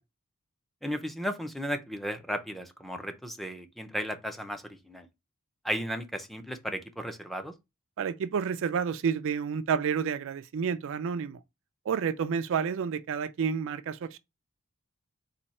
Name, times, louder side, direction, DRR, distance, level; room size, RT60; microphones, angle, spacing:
voice 1, 0.8-5.1 5.6-7.5, equal, ahead, 0.5 m, -35 dB
voice 2, 8.0-11.4 11.9-14.2, right 6 dB, 60° right, 0.4 m, -30 dB
4.2 x 2.7 x 4.1 m
head